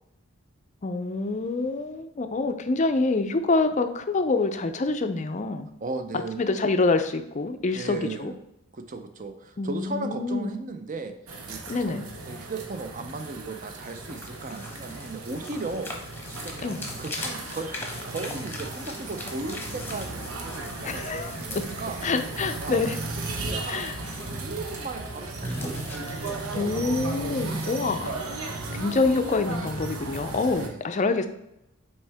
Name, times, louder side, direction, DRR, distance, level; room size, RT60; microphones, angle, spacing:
voice 1, 0.8-5.7 6.4-8.3 9.6-10.5 11.7-12.1 16.6-16.8 20.8-21.4 22.0-23.0 23.7-24.0 26.5-31.3, left 3 dB, 35° left, 8 dB, 0.4 m, -26 dB
voice 2, 5.8-6.4 7.7-8.4 8.7-11.1 11.5-12.0 12.3-15.9 16.3-22.0 22.6-22.8 23.4-23.8 24.4-26.9 30.6-30.8, right 3 dB, 35° right, 7 dB, 0.5 m, -36 dB
sound 1, 11.3-30.7, right 3 dB, 80° right, 0.9 m, -36 dB
sound 2, 13.8-28.3, left 1 dB, 10° left, 0.9 m, -41 dB
6.2 x 4.4 x 3.4 m, 0.86 s
head